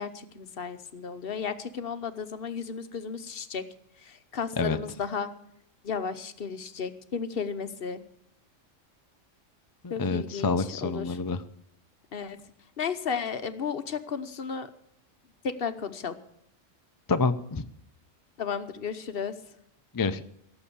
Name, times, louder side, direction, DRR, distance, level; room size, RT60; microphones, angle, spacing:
voice 1, 0.0-3.7 4.0-5.3 5.8-8.0 9.9-11.2 12.1-12.4 12.8-14.7 15.4-16.2 18.4-19.3, left 6 dB, 50° left, 11 dB, 1.0 m, -34 dB
voice 2, 9.8-11.4 17.1-17.6 19.9-20.2, left 4 dB, 35° left, 10 dB, 0.3 m, -27 dB
17.0 x 7.1 x 8.4 m, 0.74 s
omnidirectional pair, 1.3 m